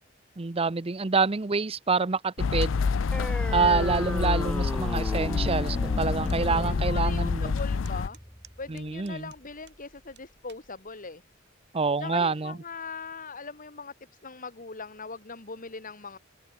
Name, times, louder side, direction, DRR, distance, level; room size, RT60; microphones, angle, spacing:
voice 1, 0.4-2.9 3.5-7.5 8.7-9.3 11.7-12.6, right 4 dB, 30° right, 0.7 m, -27 dB
sound 1, 2.4-8.1, left 5 dB, 70° left, 0.5 m, -27 dB
sound 2, 3.1-10.1, equal, 5° left, 1.3 m, -37 dB
voice 2, 3.6-4.2 6.5-8.2 8.6-11.2 12.0-13.9 14.2-16.2, left 4 dB, 45° left, 2.5 m, -40 dB
sound 3, 6.2-6.4 6.9-7.0 7.6-9.8 10.2-10.7 11.4-11.7, right 12 dB, 60° right, 6.8 m, -55 dB
open air
head